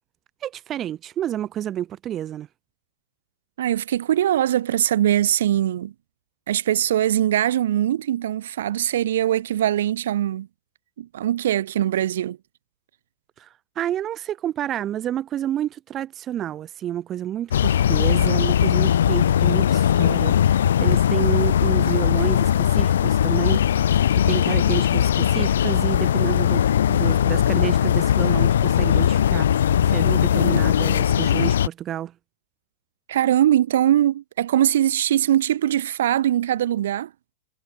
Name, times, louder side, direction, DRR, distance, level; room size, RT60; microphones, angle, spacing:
voice 1, 0.4-2.5 13.4-13.5 13.8-23.6 24.1-29.5 29.9-32.1, right 11 dB, 30° right, 2.3 m, -29 dB
voice 2, 3.6-5.9 6.5-10.5 11.0-12.4 33.1-37.1, right 11 dB, 60° right, 2.1 m, -21 dB
sound 1, 17.5-31.7, left 9 dB, 65° left, 0.7 m, -19 dB
figure-of-eight pair, 90°, 0 cm